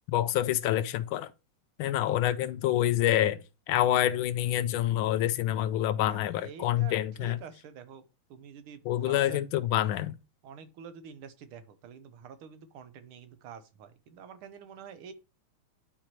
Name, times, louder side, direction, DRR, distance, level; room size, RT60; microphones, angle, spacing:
voice 1, 0.1-1.3 1.8-3.4 3.7-7.4 8.9-10.2, left 12 dB, 80° left, 1.3 m, -27 dB
voice 2, 6.0-6.9 7.2-8.0 8.3-9.5 10.4-15.1, right 7 dB, 85° right, 1.7 m, -47 dB
10.5 x 4.6 x 3.0 m
omnidirectional pair, 2.3 m